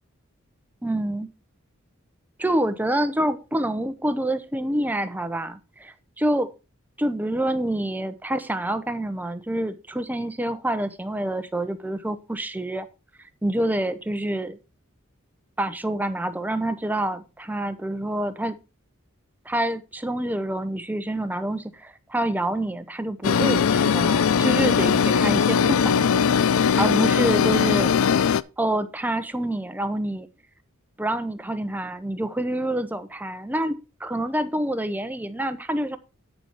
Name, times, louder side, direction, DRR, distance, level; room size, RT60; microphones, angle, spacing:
voice 1, 0.8-1.3 2.4-6.5 7.0-12.9 13.4-14.6 15.6-18.6 19.5-26.2 26.8-27.9 28.6-30.3 31.0-36.0, right 1 dB, 10° right, 0.7 m, -27 dB
sound 1, 23.2-28.4, left 7 dB, 75° left, 0.4 m, -20 dB
8.9 x 6.8 x 4.6 m
head